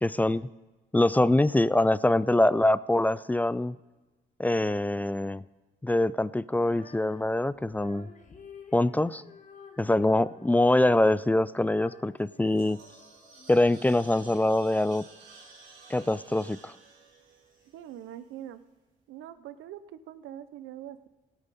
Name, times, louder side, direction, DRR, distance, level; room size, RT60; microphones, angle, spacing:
voice 1, 0.0-0.5 0.9-3.8 4.4-5.4 5.8-8.1 8.7-9.2 9.8-12.8 13.5-15.0 15.9-16.7, left 1 dB, 10° left, 18 dB, 0.3 m, -24 dB
Female singing, 6.5-13.5, left 5 dB, 40° left, 1.5 m, -52 dB
sound 1, 12.2-18.5, right 4 dB, 65° right, 3.5 m, -53 dB
voice 2, 17.7-18.6 19.1-21.1, right 11 dB, 85° right, 14 dB, 0.7 m, -43 dB
17.0 x 9.1 x 4.1 m, 1.1 s
cardioid pair, 90°, 20 cm